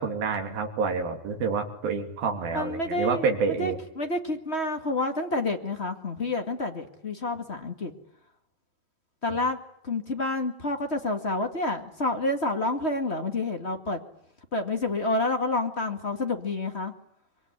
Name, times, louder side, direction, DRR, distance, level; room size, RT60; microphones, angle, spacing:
voice 1, 0.0-3.8, right 5 dB, 75° right, 4 dB, 4.6 m, -28 dB
voice 2, 2.5-7.9 9.2-9.6 9.8-14.0 14.5-16.9, left 2 dB, 25° left, 4 dB, 1.6 m, -29 dB
26.0 x 23.5 x 9.7 m, 0.72 s
omnidirectional pair, 4.2 m